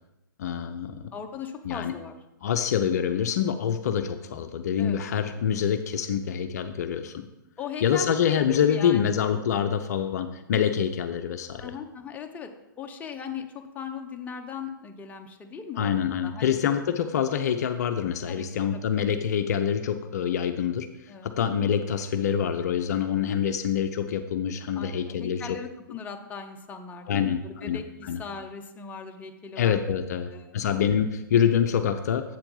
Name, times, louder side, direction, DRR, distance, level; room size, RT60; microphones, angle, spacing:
voice 1, 0.4-1.0 1.7-1.9 2.4-7.2 7.8-11.7 15.8-25.4 27.1-28.2 29.6-32.4, left 8 dB, 50° left, 8 dB, 0.5 m, -26 dB
voice 2, 1.1-2.2 4.8-5.0 7.6-9.1 11.6-12.5 12.8-16.6 18.3-18.5 18.7-18.8 21.1-21.3 24.7-29.8 30.3-30.9, left 6 dB, 15° left, 4 dB, 0.7 m, -39 dB
7.7 x 4.4 x 5.5 m, 0.94 s
figure-of-eight pair, 120°, 11 cm